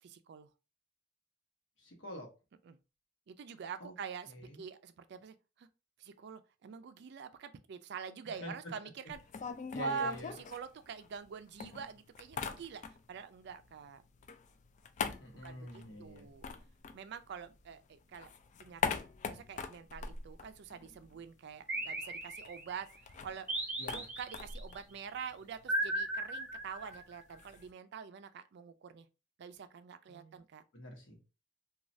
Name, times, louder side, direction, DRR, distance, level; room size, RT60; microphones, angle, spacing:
voice 1, 0.0-0.5 2.7-2.8 3.3-5.7 6.0-9.2 9.8-14.0 15.4-16.5 16.9-18.3 18.6-19.0 19.2-23.5 23.9-29.1 29.4-30.6, right 6 dB, 60° right, 0.3 m, -45 dB
voice 2, 1.8-2.3 3.8-3.9 4.3-4.7 8.2-8.5 9.7-10.3 15.2-16.3 23.8-24.1 30.1-30.4 30.7-31.2, left 1 dB, 75° left, 1.0 m, -47 dB
sound 1, 9.1-11.3 11.6-13.2 13.5-17.7 18.0-21.3 21.5-21.6 21.9-27.7, left 5 dB, 40° left, 0.3 m, -42 dB
sound 2, 21.7-22.8 23.5-24.6 25.7-27.2, right 1 dB, 10° right, 0.6 m, -37 dB
3.1 x 2.3 x 2.6 m
head